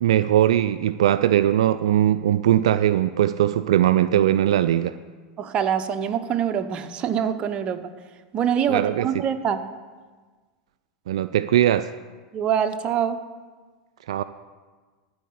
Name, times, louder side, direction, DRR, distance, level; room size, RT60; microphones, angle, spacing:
voice 1, 0.0-5.0 8.7-9.1 11.1-11.9 14.1-14.2, right 11 dB, 75° right, 13 dB, 0.3 m, -20 dB
voice 2, 5.4-7.9 8.3-9.6 12.3-13.2, right 8 dB, 35° right, 8 dB, 0.9 m, -24 dB
13.0 x 4.7 x 8.5 m, 1.4 s
hypercardioid pair, 100°, 3 cm